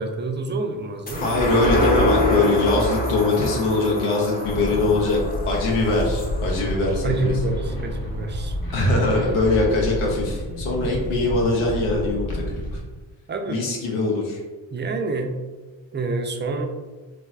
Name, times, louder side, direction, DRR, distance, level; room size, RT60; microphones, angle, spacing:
voice 1, 0.0-1.3 7.0-8.5 13.3-13.6 14.7-15.3 15.9-16.7, right 3 dB, 25° right, 4 dB, 0.4 m, -27 dB
sound 1, 1.1-7.8 8.3-8.4, left 1 dB, 20° left, 0.7 m, -25 dB
voice 2, 1.2-5.2 5.5-7.3 8.7-12.4 13.5-14.4, left 2 dB, 90° left, -2 dB, 0.6 m, -22 dB
sound 2, 4.4-12.8, left 1 dB, 50° left, 0.9 m, -29 dB
3.3 x 2.2 x 2.3 m, 1.2 s
supercardioid pair, 45°, 48 cm